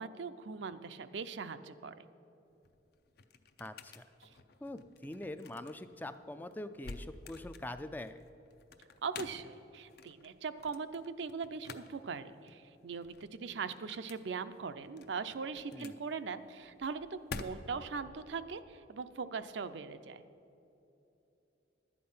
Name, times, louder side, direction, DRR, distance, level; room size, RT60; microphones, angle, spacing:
voice 1, 0.0-2.0 4.2-4.3 9.0-20.2, right 5 dB, 75° right, 11 dB, 0.5 m, -40 dB
sound 1, 2.5-18.0, left 4 dB, 55° left, 0.6 m, -51 dB
voice 2, 3.6-4.0 4.6-8.2 15.7-16.0, left 1 dB, 10° left, 10 dB, 0.3 m, -44 dB
11.5 x 8.5 x 5.5 m, 2.9 s
head